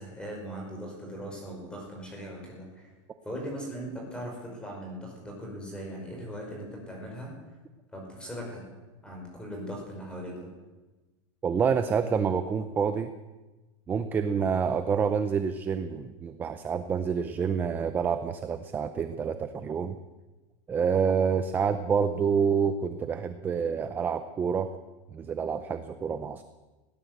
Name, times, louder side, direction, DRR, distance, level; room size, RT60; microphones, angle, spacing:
voice 1, 0.0-2.9 3.2-7.3 7.9-8.6 9.0-10.5, equal, 5° left, 0 dB, 5.3 m, -39 dB
voice 2, 11.4-13.1 13.9-20.0 20.7-24.7 25.1-26.4, right 6 dB, 10° right, 10 dB, 0.6 m, -27 dB
20.5 x 17.0 x 8.1 m, 1.2 s
supercardioid pair, 175°, 17 cm